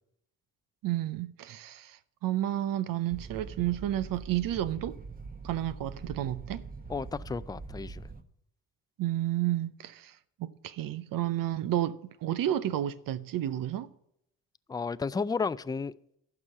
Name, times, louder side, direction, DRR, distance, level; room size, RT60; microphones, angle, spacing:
voice 1, 0.8-5.0 5.4-6.7 9.0-13.9, right 13 dB, 75° right, 0.7 m, -31 dB
sound 1, 3.1-8.2, right 4 dB, 25° right, 1.1 m, -43 dB
voice 2, 6.9-8.0 14.7-15.9, left 5 dB, 10° left, 0.4 m, -32 dB
12.0 x 4.9 x 8.5 m
cardioid pair, 70°, 34 cm